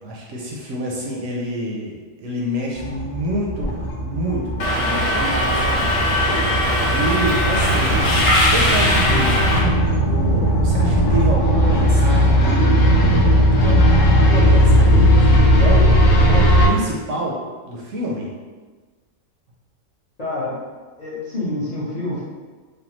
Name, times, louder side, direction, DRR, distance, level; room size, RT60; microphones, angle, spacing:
voice 1, 0.0-9.5 10.0-15.9 16.3-18.3, right 1 dB, 70° right, -2 dB, 0.8 m, -28 dB
sound 1, 2.7-16.7, equal, 80° left, 1.0 m, -17 dB
Subway metro underground, 4.6-9.6, left 1 dB, 60° left, 1.1 m, -20 dB
voice 2, 20.2-20.6 21.0-22.2, left 2 dB, 35° left, -10 dB, 0.7 m, -27 dB
3.3 x 2.1 x 2.9 m, 1.4 s
omnidirectional pair, 1.4 m